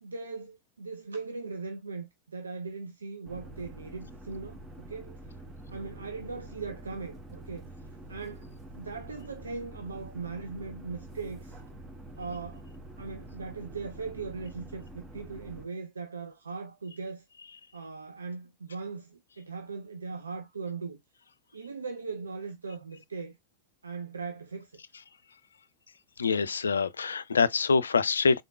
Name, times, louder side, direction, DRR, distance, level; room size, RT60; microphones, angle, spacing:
voice 1, 0.0-5.2 5.7-7.7 8.1-11.6 12.2-12.7 13.0-17.2 17.7-21.0 21.5-23.4 23.8-24.8, right 4 dB, 75° right, 0.4 m, -39 dB
sound 1, 3.2-15.7, right 1 dB, 20° right, 0.9 m, -46 dB
voice 2, 26.2-28.4, left 5 dB, 70° left, 0.3 m, -25 dB
3.7 x 3.6 x 2.2 m
figure-of-eight pair, 90°, 0 cm